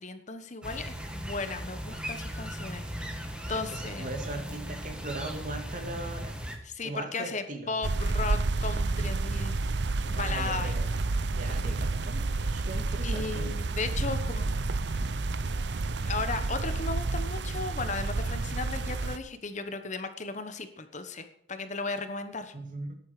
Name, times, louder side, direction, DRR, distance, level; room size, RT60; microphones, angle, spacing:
voice 1, 0.0-3.2 3.5-4.1 6.6-9.6 10.1-10.9 13.0-14.5 16.0-22.5, left 3 dB, 40° left, 9 dB, 1.1 m, -36 dB
sound 1, 0.6-6.6, equal, 5° right, 1.7 m, -38 dB
voice 2, 3.4-6.4 6.8-7.7 10.1-10.9 11.3-13.6 22.5-22.9, right 2 dB, 45° right, 5 dB, 2.4 m, -39 dB
sound 2, 7.8-19.2, right 3 dB, 60° right, 0.7 m, -30 dB
14.0 x 11.0 x 5.0 m, 0.73 s
head